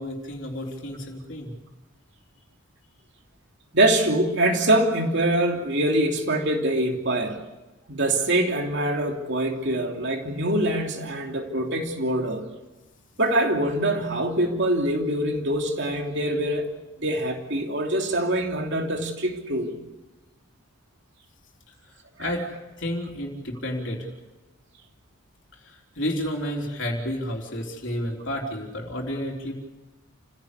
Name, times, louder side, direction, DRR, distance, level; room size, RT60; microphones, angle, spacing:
voice 1, 0.0-1.5 22.2-22.4 22.8-24.1 25.6-29.5, left 1 dB, 55° left, 0 dB, 3.8 m, -31 dB
voice 2, 3.7-7.4 7.9-12.5 13.2-16.7 17.0-19.7, right 1 dB, 55° right, 3 dB, 3.0 m, -24 dB
29.0 x 16.5 x 8.3 m, 1.1 s
head